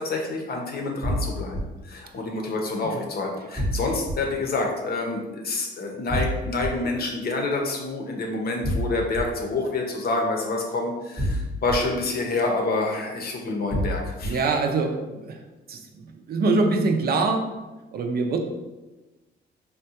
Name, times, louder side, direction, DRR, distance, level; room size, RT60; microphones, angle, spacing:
voice 1, 0.0-14.4, left 2 dB, 50° left, 1 dB, 0.7 m, -28 dB
sound 1, 1.0-1.6 3.6-4.1 6.1-6.7 8.6-9.2 11.2-11.8 13.7-14.3, equal, 15° right, 0.7 m, -26 dB
voice 2, 14.2-15.4 15.7-17.5 17.9-18.4, right 3 dB, 50° right, 3 dB, 0.5 m, -24 dB
3.6 x 2.2 x 2.8 m, 1.1 s
cardioid pair, 90°, 20 cm